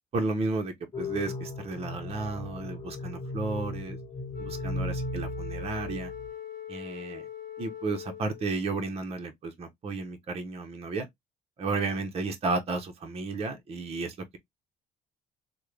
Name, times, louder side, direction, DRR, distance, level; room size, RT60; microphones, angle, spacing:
voice 1, 0.1-4.0 4.4-6.1 6.7-7.2 7.6-11.1 11.6-14.4, right 3 dB, 35° right, 0.7 m, -33 dB
sound 1, 0.9-6.3, left 1 dB, 25° left, 1.2 m, -36 dB
Wind instrument woodwind instrument, 4.3-8.7, left 10 dB, 50° left, 1.1 m, -41 dB
3.5 x 2.2 x 3.2 m
cardioid pair, 110°, 17 cm